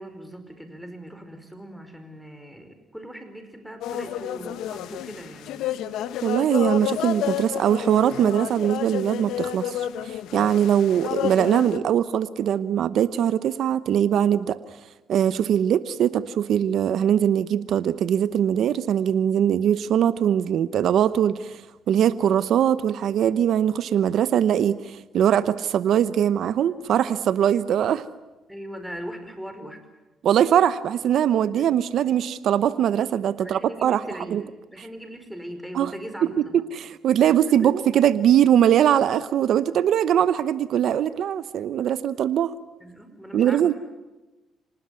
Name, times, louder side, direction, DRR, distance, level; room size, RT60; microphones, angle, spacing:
voice 1, 0.0-5.7 6.8-6.9 28.5-29.8 31.5-31.6 33.4-34.4 34.7-36.6 37.2-37.8 42.8-43.7, equal, ahead, 7 dB, 5.1 m, -39 dB
sound 1, 3.8-11.8, left 11 dB, 85° left, 1.2 m, -30 dB
voice 2, 6.2-14.6 15.1-21.6 21.9-28.0 30.2-34.0 34.3-34.4 35.7-35.9 36.5-42.5 43.3-43.7, right 9 dB, 70° right, 14 dB, 0.9 m, -21 dB
26.0 x 19.5 x 9.6 m, 1.1 s
cardioid pair, 90°, 0 cm